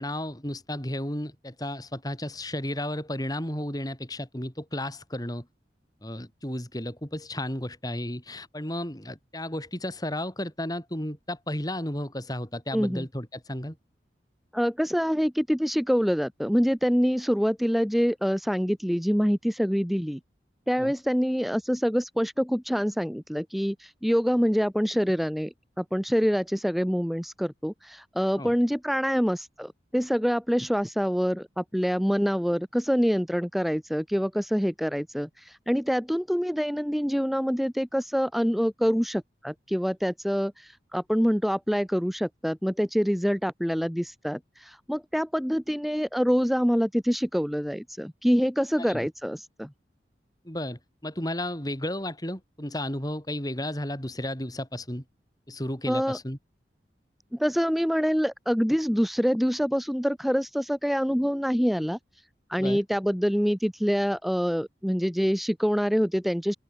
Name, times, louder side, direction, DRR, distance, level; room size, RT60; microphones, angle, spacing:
voice 1, 0.0-5.5 6.0-13.8 20.8-20.9 28.4-28.5 48.8-49.1 50.4-55.0 55.5-56.4 62.6-62.8, left 1 dB, 20° left, 5.8 m, -33 dB
voice 2, 12.7-13.0 14.5-20.2 20.7-49.7 55.9-56.2 57.3-62.0 62.5-66.6, equal, ahead, 4.7 m, -26 dB
open air
head